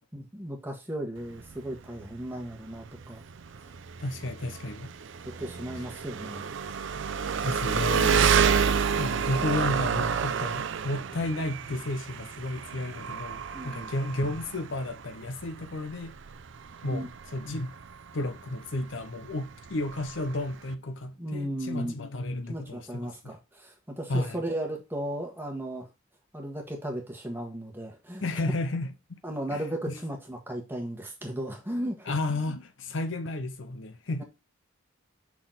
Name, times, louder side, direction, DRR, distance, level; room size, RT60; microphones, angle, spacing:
voice 1, 0.1-3.2 3.5-3.6 5.2-6.5 13.5-13.9 16.8-17.1 21.2-22.0 22.5-25.9 26.3-28.3 29.2-32.1, right 1 dB, 10° right, 1.5 m, -35 dB
Engine, 1.2-20.7, right 6 dB, 60° right, 0.5 m, -30 dB
voice 2, 4.0-4.9 7.4-8.3 9.0-16.2 16.8-17.8 18.1-23.3 24.1-24.4 28.2-28.9 29.5-29.9 32.1-34.2, left 2 dB, 60° left, 0.7 m, -32 dB
5.9 x 4.2 x 3.8 m
head